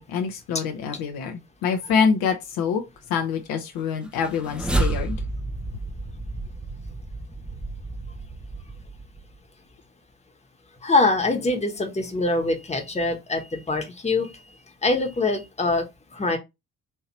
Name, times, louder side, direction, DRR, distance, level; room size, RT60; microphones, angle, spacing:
voice 1, 0.0-2.8 3.1-5.2, left 6 dB, 55° left, 0.8 m, -25 dB
sound 1, 4.1-9.4, right 2 dB, ahead, 0.6 m, -30 dB
voice 2, 10.8-14.3 14.8-15.8 16.1-16.4, left 2 dB, 15° left, 1.1 m, -23 dB
4.4 x 2.8 x 2.9 m
figure-of-eight pair, 45°, 43 cm